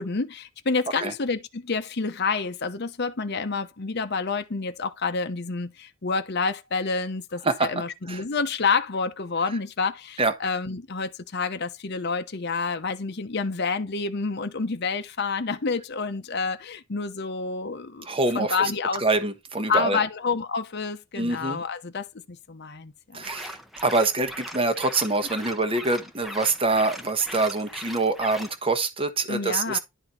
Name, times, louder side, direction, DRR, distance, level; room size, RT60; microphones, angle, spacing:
voice 1, 0.0-18.1 18.3-19.0 19.7-23.2 29.3-29.8, left 4 dB, 50° left, 0.8 m, -28 dB
voice 2, 18.0-20.0 21.2-21.6 23.1-29.8, right 3 dB, 25° right, 1.1 m, -25 dB
sound 1, 23.2-28.6, equal, ahead, 0.8 m, -40 dB
11.0 x 4.1 x 4.3 m
head